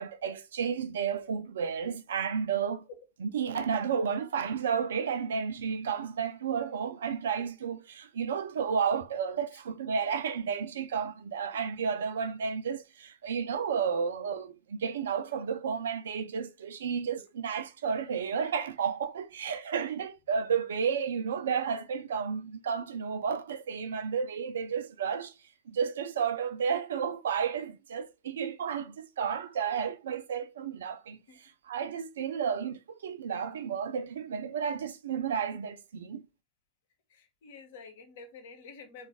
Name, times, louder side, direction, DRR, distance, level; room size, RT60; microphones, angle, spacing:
voice 1, 0.0-2.8 3.2-25.3 25.7-31.2 31.7-36.3, right 6 dB, 65° right, 0.4 m, -32 dB
voice 2, 37.1-39.1, left 4 dB, 55° left, 0.9 m, -49 dB
3.8 x 2.4 x 3.4 m
figure-of-eight pair, 90°, 0 cm